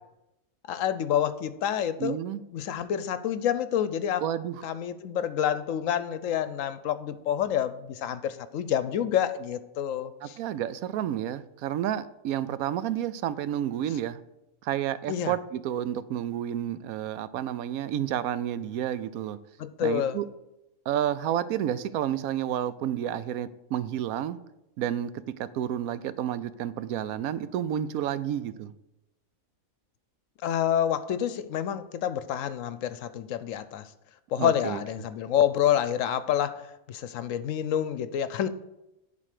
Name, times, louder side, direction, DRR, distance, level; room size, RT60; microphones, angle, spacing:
voice 1, 0.7-2.2 2.5-4.2 4.6-10.4 15.1-15.3 19.6-20.2 30.4-33.8 34.3-36.6 36.9-38.5, left 10 dB, 70° left, 13 dB, 1.0 m, -28 dB
voice 2, 2.0-2.4 4.2-4.6 10.2-14.2 14.6-19.4 19.8-20.2 20.9-24.4 24.8-28.7 34.4-34.8, right 11 dB, 85° right, 15 dB, 1.0 m, -30 dB
11.0 x 4.1 x 6.5 m, 0.90 s
omnidirectional pair, 1.5 m